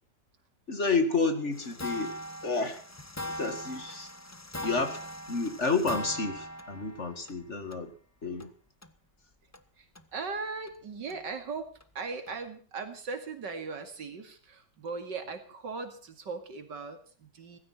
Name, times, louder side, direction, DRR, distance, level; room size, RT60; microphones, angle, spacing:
voice 1, 0.7-2.2 2.4-2.8 3.3-4.1 4.6-5.0 5.3-7.9 8.2-8.5, left 4 dB, 40° left, 8 dB, 2.3 m, -30 dB
sound 1, 1.5-7.3 7.7-7.8 8.4-8.5 8.8-8.9 9.5-9.6 9.9-10.0 10.7-10.8 11.1-11.2 11.8-11.9 12.3-12.4, equal, 15° left, 0.5 m, -40 dB
voice 2, 9.8-11.7 11.9-17.6, right 4 dB, 80° right, 7 dB, 2.9 m, -38 dB
17.0 x 15.5 x 4.3 m, 0.44 s
omnidirectional pair, 1.9 m